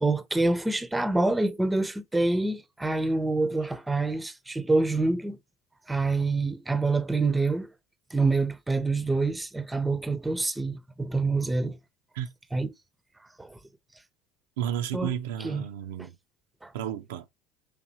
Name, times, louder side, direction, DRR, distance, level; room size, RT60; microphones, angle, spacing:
voice 1, 0.0-5.4 5.9-7.7 8.1-11.8 12.5-12.7 13.4-13.6 14.9-15.1 15.4-15.6 16.0-16.1 16.6-16.7, right 3 dB, 10° right, 0.6 m, -26 dB
voice 2, 14.6-16.2 16.7-17.3, right 10 dB, 85° right, 0.5 m, -32 dB
4.9 x 3.5 x 2.8 m
supercardioid pair, 90°, 0 cm